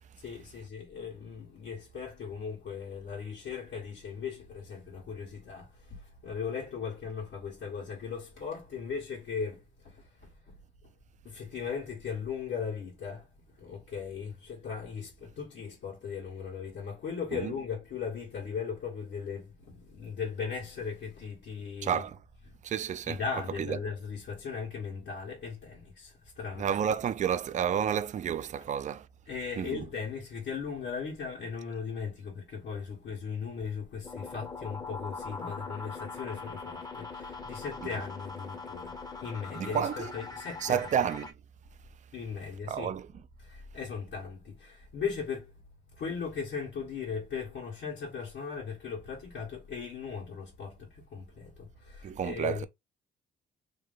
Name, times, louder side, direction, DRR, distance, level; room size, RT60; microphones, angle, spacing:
voice 1, 0.2-10.5 11.2-22.0 22.5-22.6 23.1-26.8 29.3-40.9 42.1-42.9 43.4-45.6 46.0-52.7, left 6 dB, 70° left, 1.6 m, -38 dB
voice 2, 21.8-22.2 22.6-23.2 23.6-23.8 26.6-29.1 29.6-29.9 37.8-37.9 39.6-40.1 40.6-41.3 42.7-43.1 52.0-52.7, right 8 dB, 40° right, 0.4 m, -30 dB
sound 1, 34.0-41.3, left 4 dB, 20° left, 0.8 m, -41 dB
3.1 x 2.7 x 3.6 m
cardioid pair, 90°, 20 cm